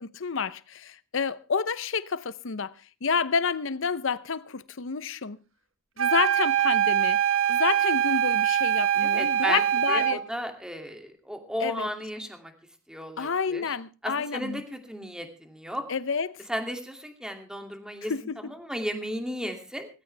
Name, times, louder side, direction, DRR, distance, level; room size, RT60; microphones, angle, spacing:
voice 1, 0.0-2.7 3.0-5.4 6.0-7.2 7.5-10.2 11.6-11.9 13.2-14.6 15.9-16.4 18.1-18.5, left 5 dB, 65° left, 0.8 m, -29 dB
sound 1, 6.0-10.2, right 9 dB, 70° right, 1.5 m, -23 dB
voice 2, 9.0-9.6 9.9-12.5 12.9-13.6 14.0-15.8 16.5-18.1 18.4-19.9, equal, 5° right, 2.6 m, -34 dB
18.5 x 15.5 x 3.4 m
head